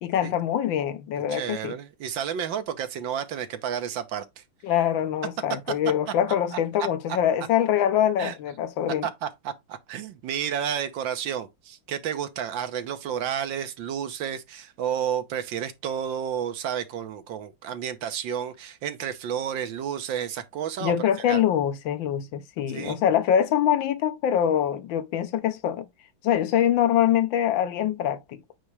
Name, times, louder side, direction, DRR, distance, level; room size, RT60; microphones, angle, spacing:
voice 1, 0.0-1.7 4.6-9.1 20.8-25.9 26.2-28.4, left 10 dB, 75° left, 1.5 m, -24 dB
voice 2, 1.3-4.4 6.5-6.6 8.2-8.3 8.9-21.0 21.3-21.4 22.7-23.0, right 8 dB, 75° right, 1.6 m, -31 dB
8.6 x 3.0 x 4.7 m
omnidirectional pair, 2.1 m